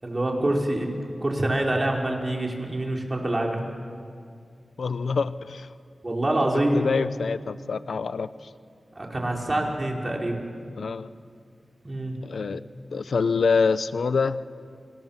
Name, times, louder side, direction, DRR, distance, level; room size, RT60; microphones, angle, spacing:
voice 1, 0.0-0.9 1.2-3.6 6.0-6.8 8.9-10.4 11.8-12.1, right 1 dB, 30° right, 0 dB, 5.0 m, -26 dB
voice 2, 4.8-5.7 6.7-8.3 10.8-11.1 12.2-12.6 12.9-14.4, left 5 dB, 80° left, 13 dB, 0.8 m, -25 dB
29.0 x 27.5 x 7.4 m, 2.3 s
wide cardioid pair, 80°, 0 cm